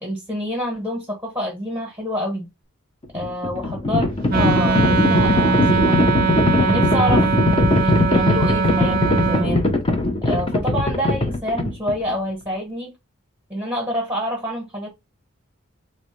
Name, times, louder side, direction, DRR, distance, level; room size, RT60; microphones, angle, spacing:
voice 1, 0.0-2.5 3.1-6.1 6.6-7.3 7.8-9.7 10.2-12.9 13.5-14.9, equal, 10° right, 1.1 m, -27 dB
Livestock farm animals working animals, 3.0-12.1, left 2 dB, 25° left, 0.6 m, -20 dB
Wind instrument woodwind instrument, 4.3-9.5, right 4 dB, 40° right, 0.5 m, -21 dB
3.8 x 2.1 x 3.0 m
head